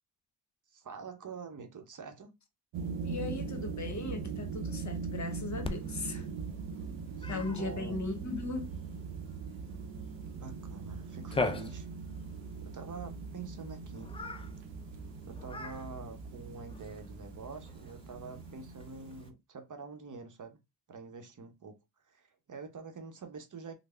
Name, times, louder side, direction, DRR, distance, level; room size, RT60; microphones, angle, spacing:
voice 1, 0.7-2.3 7.2-8.0 10.3-11.9 12.6-14.1 15.3-20.6 20.9-21.8 22.1-23.7, right 4 dB, 45° right, 0.7 m, -46 dB
sound 1, 2.7-19.3, right 5 dB, 75° right, 0.6 m, -41 dB
voice 2, 3.0-6.3 7.3-8.7, left 3 dB, 40° left, 0.9 m, -38 dB
Cat, 5.6-19.3, left 3 dB, 15° left, 0.4 m, -43 dB
3.3 x 2.0 x 3.2 m
supercardioid pair, 50°, 45 cm